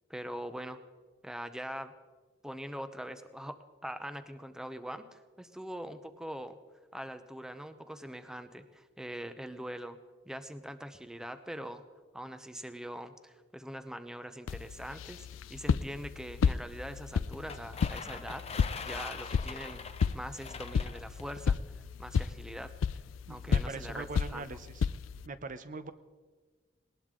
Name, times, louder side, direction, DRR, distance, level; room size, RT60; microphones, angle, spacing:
voice 1, 0.1-0.8 1.2-1.9 2.4-6.6 6.9-10.0 10.2-11.8 12.1-19.8 20.1-22.7 23.3-24.6, equal, 5° right, 9 dB, 0.7 m, -43 dB
sound 1, 14.5-25.3, left 6 dB, 85° left, 0.4 m, -33 dB
sound 2, 17.3-21.4, left 5 dB, 35° left, 0.9 m, -43 dB
voice 2, 23.3-24.9 25.3-25.9, right 3 dB, 40° right, 11 dB, 0.7 m, -42 dB
19.5 x 19.0 x 3.7 m, 1.3 s
head